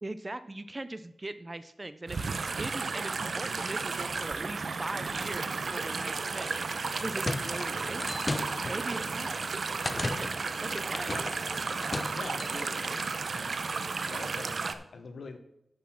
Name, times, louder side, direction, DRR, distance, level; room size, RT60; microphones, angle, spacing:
voice 1, 0.0-6.6 7.0-8.2 8.6-9.4 10.2-10.3 10.6-11.1, right 2 dB, 25° right, 12 dB, 0.4 m, -40 dB
sound 1, 2.1-14.7, right 4 dB, 60° right, 0.7 m, -33 dB
sound 2, 6.7-13.1, left 2 dB, 25° left, 0.6 m, -37 dB
voice 2, 12.2-12.8 13.3-13.5 14.1-15.4, left 4 dB, 75° left, 5 dB, 0.9 m, -43 dB
9.3 x 6.2 x 6.0 m, 0.77 s
wide cardioid pair, 130°, 0 cm